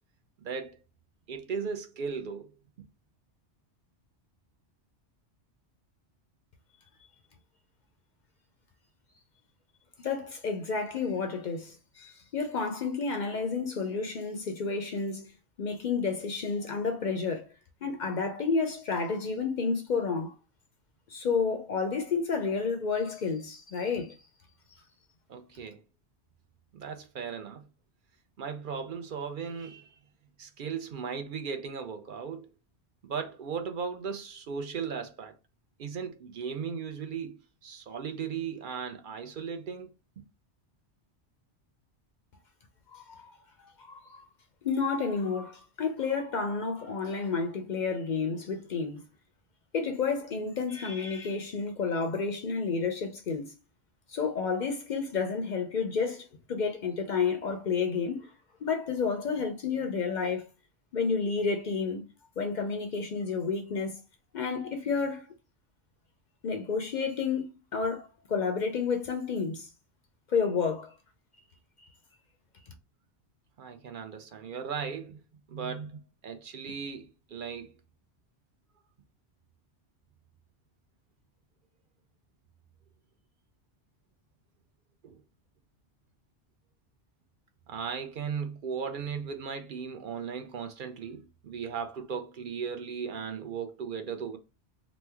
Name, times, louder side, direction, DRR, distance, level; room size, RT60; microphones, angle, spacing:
voice 1, 0.4-0.8 1.3-2.4 25.3-25.8 26.7-27.7 28.4-29.9 30.4-32.5 33.0-35.3 35.8-39.9 73.6-75.2 75.5-77.7 85.0-85.2 87.7-94.4, right 6 dB, 60° right, 0.6 m, -37 dB
voice 2, 10.0-15.3 15.6-17.5 17.8-20.4 21.1-24.2 42.9-43.4 43.8-44.2 44.6-49.0 49.7-53.5 54.1-58.3 58.6-60.5 60.9-62.0 62.4-64.0 64.3-65.3 66.4-69.7 70.3-70.9, left 5 dB, 60° left, 0.5 m, -30 dB
3.0 x 2.1 x 3.3 m
omnidirectional pair, 1.2 m